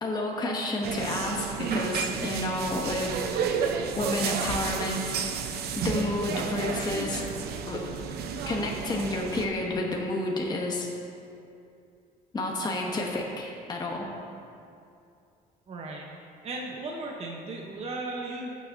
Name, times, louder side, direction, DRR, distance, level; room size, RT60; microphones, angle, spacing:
voice 1, 0.0-3.1 4.0-5.1 5.8-7.2 7.7-7.8 8.5-10.9 12.3-14.1, left 2 dB, 25° left, -1 dB, 1.0 m, -30 dB
sound 1, 0.8-9.5, right 6 dB, 70° right, 0.7 m, -31 dB
voice 2, 15.7-16.1 16.4-18.5, right 2 dB, 40° right, -1 dB, 0.9 m, -36 dB
15.5 x 6.2 x 2.7 m, 2.5 s
cardioid pair, 110°, 17 cm